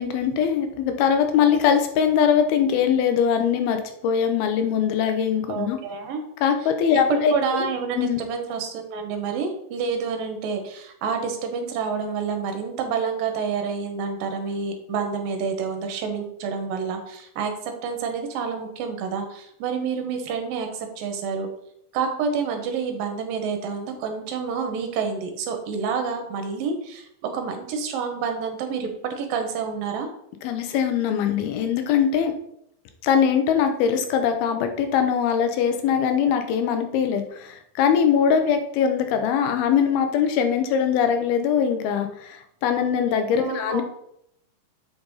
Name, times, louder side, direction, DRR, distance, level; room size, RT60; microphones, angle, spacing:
voice 1, 0.0-5.8 6.4-7.3 8.0-8.2 30.4-32.3 33.0-43.8, left 7 dB, 85° left, 7 dB, 2.8 m, -22 dB
voice 2, 5.5-6.2 7.1-17.5 17.8-21.5 21.9-30.1 43.3-43.8, right 5 dB, 75° right, 5 dB, 2.6 m, -28 dB
7.6 x 5.3 x 4.0 m, 0.74 s
omnidirectional pair, 4.3 m